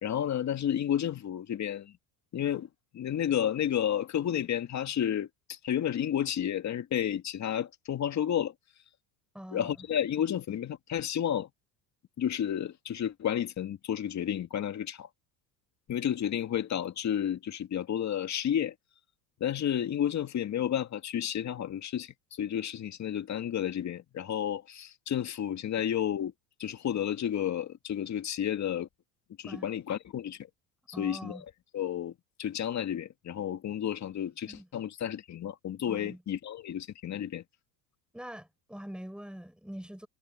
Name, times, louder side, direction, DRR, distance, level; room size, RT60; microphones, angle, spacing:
voice 1, 0.0-2.0 2.3-2.7 2.9-8.5 9.5-11.5 12.2-15.1 15.9-18.7 19.4-26.3 26.6-28.9 29.4-30.4 31.0-31.4 31.7-32.1 32.4-37.4, left 10 dB, 40° left, 2.3 m, -31 dB
voice 2, 9.3-9.9 29.4-29.7 30.9-31.4 34.4-34.7 35.9-36.2 38.1-40.1, equal, ahead, 4.8 m, -44 dB
supercardioid pair, 110°, 44 cm